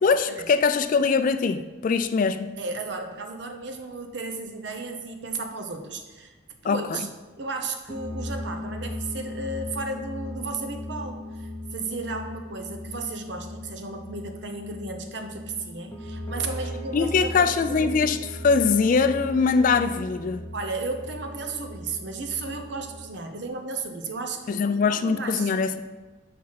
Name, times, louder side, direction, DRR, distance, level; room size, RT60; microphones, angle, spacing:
voice 1, 0.0-2.5 6.6-7.0 16.9-18.2 18.4-20.5 24.5-25.8, left 5 dB, 45° left, 11 dB, 0.3 m, -22 dB
voice 2, 2.6-6.3 6.6-7.1 7.4-18.1 20.5-25.5, right 3 dB, 60° right, 6 dB, 0.8 m, -34 dB
sound 1, 7.9-23.0, left 1 dB, 10° left, 1.0 m, -38 dB
5.9 x 5.7 x 4.7 m, 1.2 s
head